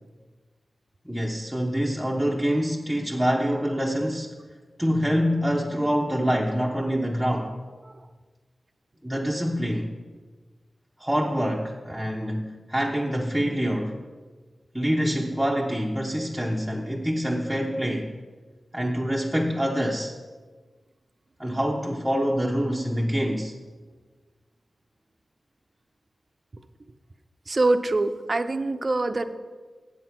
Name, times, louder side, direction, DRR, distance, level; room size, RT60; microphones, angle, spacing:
voice 1, 1.0-4.4 4.8-7.6 9.0-9.9 11.0-14.0 14.7-18.1 18.7-20.1 21.4-23.5, equal, 5° right, 0.9 m, -26 dB
voice 2, 27.5-29.2, right 2 dB, 45° right, 0.6 m, -24 dB
7.8 x 7.5 x 5.9 m
cardioid pair, 55°, 0 cm